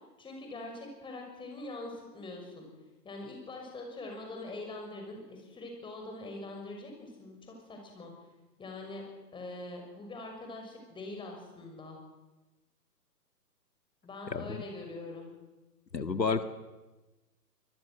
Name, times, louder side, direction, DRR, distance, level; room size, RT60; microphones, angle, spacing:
voice 1, 0.2-2.7 3.0-8.1 8.6-9.0 9.3-12.0 14.0-15.3, left 2 dB, 10° left, 2 dB, 6.3 m, -43 dB
voice 2, 14.3-14.6 15.9-16.4, left 4 dB, 85° left, 9 dB, 1.9 m, -30 dB
24.5 x 21.0 x 7.9 m, 1.1 s
figure-of-eight pair, 130°, 49 cm